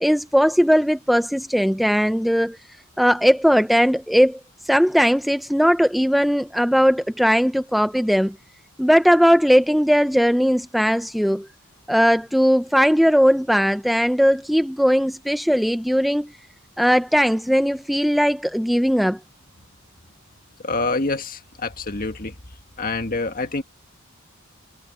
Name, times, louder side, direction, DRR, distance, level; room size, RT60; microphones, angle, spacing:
voice 1, 0.0-2.6 3.0-8.3 8.8-11.5 11.9-16.3 16.8-19.2, equal, ahead, 0.4 m, -18 dB
voice 2, 20.6-22.4 22.8-23.6, left 3 dB, 40° left, 1.7 m, -26 dB
head